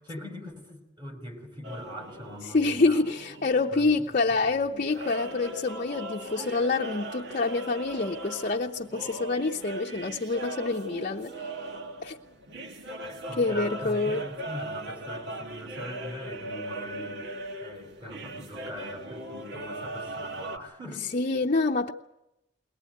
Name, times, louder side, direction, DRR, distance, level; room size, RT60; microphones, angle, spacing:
voice 1, 0.0-3.0 3.7-3.9 4.5-4.7 13.0-17.2 17.6-21.1, equal, 25° right, 5.4 m, -42 dB
sound 1, 1.6-20.6, right 1 dB, 60° right, 1.8 m, -39 dB
voice 2, 2.4-11.3 12.0-12.2 13.4-14.2 21.1-21.9, left 3 dB, 40° left, 0.8 m, -27 dB
22.0 x 20.0 x 9.2 m
head